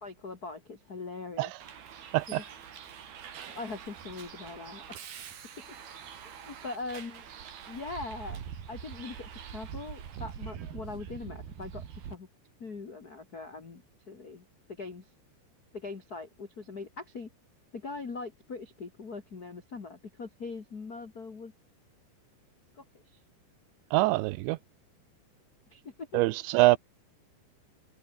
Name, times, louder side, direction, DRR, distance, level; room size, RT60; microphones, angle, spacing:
voice 1, 0.0-1.5 2.3-2.4 3.5-4.8 5.6-5.7 6.2-7.3 7.7-8.4 8.7-11.8 12.1-12.3 12.6-15.1 15.7-17.3 17.7-21.5 22.7-22.8 23.1-23.2 25.7-26.2, left 3 dB, 45° left, 1.2 m, -41 dB
Bus, 1.6-12.1, right 8 dB, 60° right, 4.7 m, -44 dB
voice 2, 23.9-24.6 26.1-26.8, right 20 dB, 90° right, 2.9 m, -24 dB
omnidirectional pair, 5.2 m